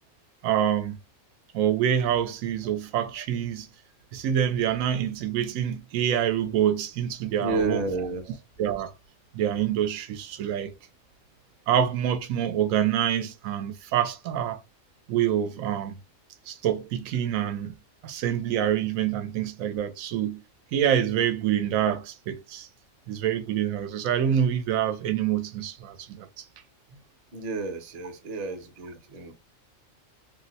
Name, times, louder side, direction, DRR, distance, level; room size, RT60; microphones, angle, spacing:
voice 1, 0.4-1.0 1.5-3.7 4.1-7.8 8.6-8.9 9.3-10.7 11.7-14.6 15.1-16.0 16.5-17.7 18.0-20.4 20.7-22.7 23.1-26.4, right 10 dB, 90° right, 1.0 m, -26 dB
voice 2, 7.4-8.4 27.3-29.3, right 3 dB, 40° right, 0.6 m, -31 dB
2.7 x 2.1 x 3.9 m
omnidirectional pair, 1.4 m